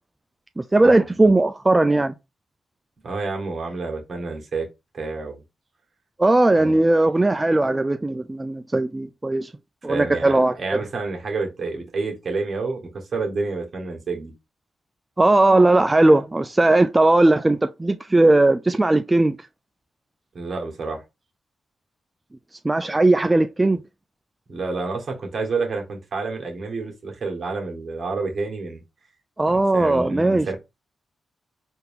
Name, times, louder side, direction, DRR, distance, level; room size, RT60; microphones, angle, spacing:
voice 1, 0.6-2.1 6.2-9.5 9.8-10.8 15.2-19.4 22.6-23.8 29.4-30.5, right 2 dB, 20° right, 0.3 m, -18 dB
voice 2, 3.0-4.7 4.9-5.4 6.5-6.7 9.9-14.3 20.3-21.0 24.5-28.8 29.5-30.6, right 3 dB, 55° right, 1.5 m, -29 dB
4.0 x 2.7 x 3.5 m
cardioid pair, 55°, 0 cm